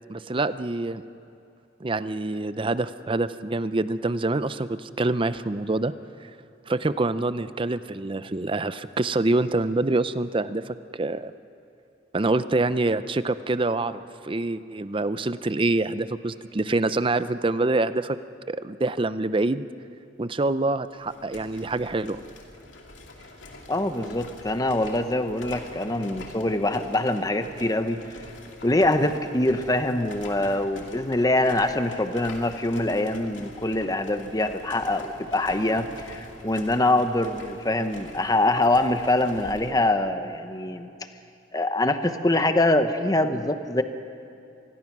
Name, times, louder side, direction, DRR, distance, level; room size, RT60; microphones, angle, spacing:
voice 1, 0.1-1.0 1.8-5.9 6.2-6.3 6.7-11.3 12.1-18.2 18.5-19.6 20.2-22.2, right 2 dB, 25° right, 13 dB, 0.5 m, -26 dB
sound 1, 20.9-39.8, left 2 dB, 80° left, 2.3 m, -45 dB
voice 2, 23.7-28.0 28.6-40.9 41.5-43.8, left 1 dB, 20° left, 8 dB, 1.0 m, -24 dB
26.0 x 20.5 x 6.1 m, 2.6 s
head